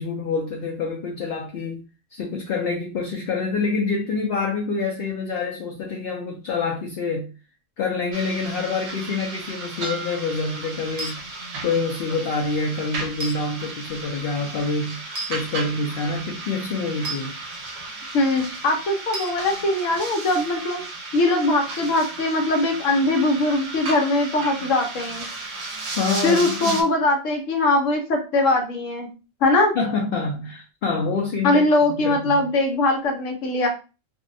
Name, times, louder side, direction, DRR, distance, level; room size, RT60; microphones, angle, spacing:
voice 1, 0.0-1.8 2.1-7.3 7.8-11.2 11.6-15.0 15.3-17.3 26.0-26.8 29.7-32.5, left 4 dB, 60° left, 0.6 m, -26 dB
sound 1, 8.1-26.8, right 3 dB, 65° right, 0.8 m, -34 dB
sound 2, 11.0-11.2 13.2-13.4 15.1-15.3 17.0-17.2 19.1-19.4, right 2 dB, 30° right, 0.3 m, -31 dB
voice 2, 18.1-20.8 21.1-25.2 26.2-29.1 29.4-29.7 31.4-33.7, left 2 dB, 80° left, 1.1 m, -21 dB
2.6 x 2.1 x 2.5 m
omnidirectional pair, 1.3 m